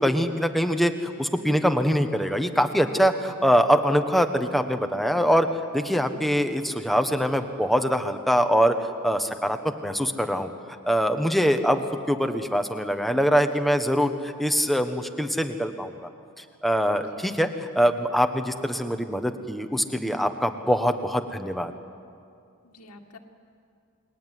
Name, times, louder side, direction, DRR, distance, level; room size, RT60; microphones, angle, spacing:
voice 1, 0.0-5.5 5.7-8.8 9.0-10.5 10.8-15.9 16.6-21.7, equal, ahead, 6 dB, 1.4 m, -23 dB
voice 2, 16.9-17.3 22.6-23.2, left 1 dB, 85° left, 1 dB, 2.2 m, -48 dB
29.0 x 22.0 x 9.4 m, 2.3 s
head